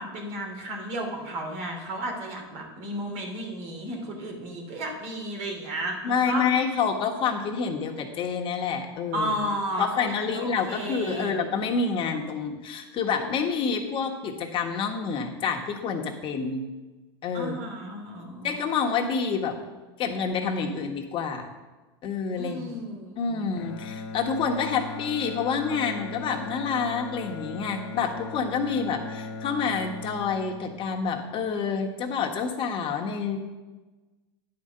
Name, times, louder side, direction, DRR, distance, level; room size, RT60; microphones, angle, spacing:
voice 1, 0.0-6.5 9.1-11.3 17.3-18.6 22.3-23.4, right 1 dB, 60° right, 0 dB, 3.1 m, -33 dB
voice 2, 6.0-9.3 9.8-16.7 17.2-17.6 18.4-19.6 20.0-21.5 22.0-22.7 23.1-33.4, left 5 dB, 40° left, 2 dB, 1.4 m, -28 dB
Bowed string instrument, 23.6-31.8, left 4 dB, 75° left, 0.8 m, -39 dB
10.5 x 5.1 x 6.7 m, 1.2 s
supercardioid pair, 115°, 13 cm